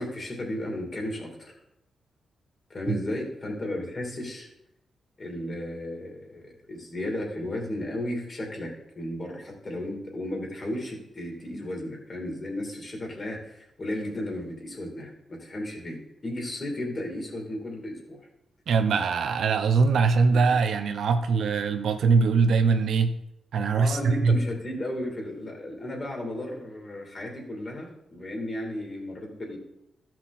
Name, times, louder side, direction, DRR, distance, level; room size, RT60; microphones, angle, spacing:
voice 1, 0.0-1.5 2.7-4.5 5.2-8.7 8.9-18.2 20.3-20.4 23.8-29.6, left 1 dB, 35° left, 0 dB, 2.8 m, -34 dB
voice 2, 18.7-23.1 23.5-24.4, right 4 dB, 75° right, 7 dB, 0.8 m, -22 dB
13.0 x 6.0 x 4.2 m, 0.81 s
wide cardioid pair, 125°, 0 cm